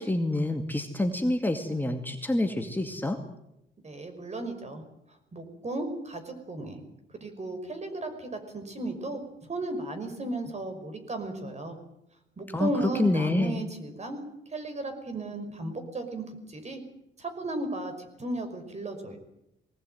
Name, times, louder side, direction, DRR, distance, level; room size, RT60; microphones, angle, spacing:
voice 1, 0.0-3.2 12.5-13.6, left 1 dB, 10° left, 4 dB, 2.2 m, -27 dB
voice 2, 3.8-4.8 5.3-6.8 7.1-9.2 9.5-11.8 12.4-14.2 14.5-16.8 17.2-19.2, right 2 dB, 35° right, 7 dB, 5.7 m, -35 dB
21.0 x 18.5 x 9.3 m, 0.84 s
cardioid pair, 90°, 20 cm